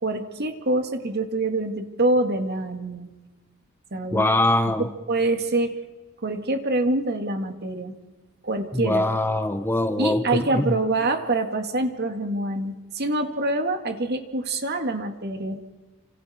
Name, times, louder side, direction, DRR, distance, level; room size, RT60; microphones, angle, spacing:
voice 1, 0.0-3.1 3.9-4.2 4.8-5.8 6.2-8.0 8.4-9.1 10.0-15.6, right 2 dB, 50° right, 2.0 m, -25 dB
voice 2, 4.1-4.9 8.7-10.2 10.5-10.8, left 1 dB, 10° left, 0.8 m, -22 dB
29.0 x 26.5 x 4.3 m
head